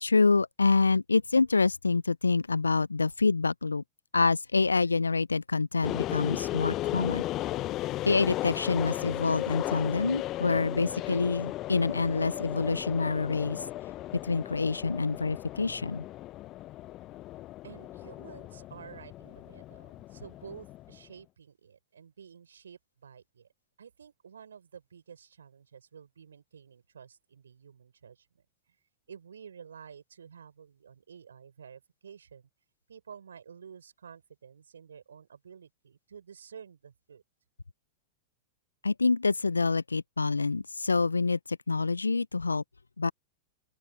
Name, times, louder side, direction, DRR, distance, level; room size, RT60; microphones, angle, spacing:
voice 1, 0.0-3.8 4.1-7.2 8.1-13.6 14.2-16.0 38.8-42.6 43.0-43.1, left 4 dB, 85° left, 0.7 m, -26 dB
sound 1, 5.8-21.0, left 15 dB, 35° left, 0.9 m, -36 dB
voice 2, 17.6-23.5 23.8-28.4 29.1-32.5 32.9-37.2, right 7 dB, 75° right, 6.6 m, -50 dB
open air
figure-of-eight pair, 95°, 0 cm